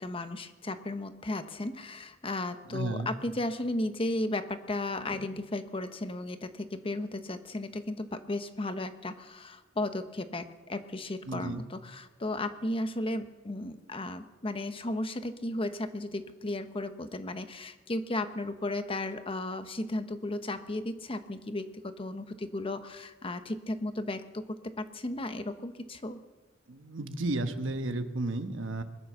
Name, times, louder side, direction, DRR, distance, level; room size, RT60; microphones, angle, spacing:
voice 1, 0.0-26.2, left 2 dB, 30° left, 9 dB, 0.9 m, -35 dB
voice 2, 2.7-3.1 11.3-11.6 26.7-28.8, right 2 dB, 85° right, 8 dB, 1.2 m, -33 dB
21.5 x 9.4 x 6.8 m, 1.2 s
head